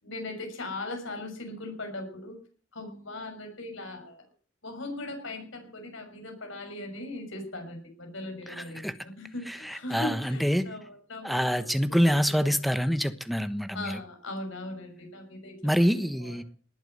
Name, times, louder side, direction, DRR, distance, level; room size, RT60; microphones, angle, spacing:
voice 1, 0.0-2.4 2.7-4.2 4.6-12.5 13.7-15.9 16.2-16.4, left 2 dB, 70° left, 6.3 m, -39 dB
voice 2, 9.5-10.7 11.2-14.0 15.6-16.4, equal, ahead, 1.1 m, -26 dB
19.0 x 8.9 x 8.0 m
head